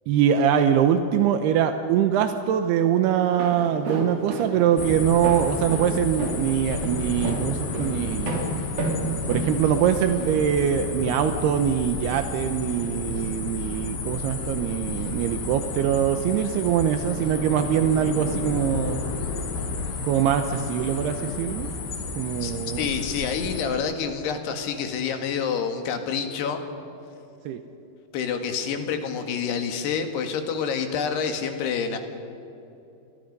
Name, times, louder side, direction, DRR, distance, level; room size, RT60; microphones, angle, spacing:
voice 1, 0.1-8.3 9.3-19.0 20.0-21.7 22.2-22.9 27.5-27.6, right 9 dB, 85° right, 7 dB, 2.9 m, -23 dB
Walk footsteps, 3.2-10.3, right 2 dB, 65° right, 4.9 m, -31 dB
sound 1, 4.8-23.6, left 3 dB, 70° left, 4.4 m, -32 dB
voice 2, 22.4-26.6 28.1-32.0, left 6 dB, 90° left, 6 dB, 3.9 m, -28 dB
30.0 x 22.0 x 5.4 m, 2.8 s
omnidirectional pair, 4.6 m